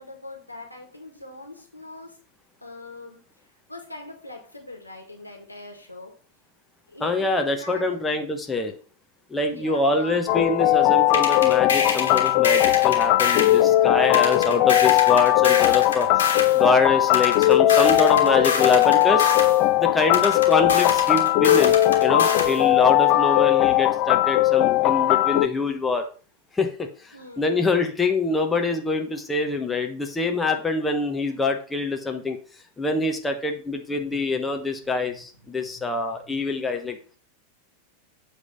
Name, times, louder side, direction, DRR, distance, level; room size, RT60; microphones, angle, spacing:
voice 1, 0.0-2.2 2.6-3.2 3.7-6.1 6.9-8.0 9.5-10.2 14.4-14.9 23.0-23.6 27.1-27.7 34.1-34.2 34.8-36.4, left 2 dB, 85° left, 1 dB, 1.9 m, -42 dB
voice 2, 7.0-8.7 9.3-19.2 19.8-26.0 26.5-32.4 32.8-37.0, left 3 dB, 10° left, 3 dB, 1.1 m, -25 dB
sound 1, 10.3-25.5, left 15 dB, 40° left, 0.5 m, -19 dB
sound 2, 11.1-13.6 14.1-16.6 17.1-19.6 20.1-22.6, left 5 dB, 65° left, 1.7 m, -26 dB
8.1 x 3.5 x 5.4 m, 0.39 s
figure-of-eight pair, 90°, 0 cm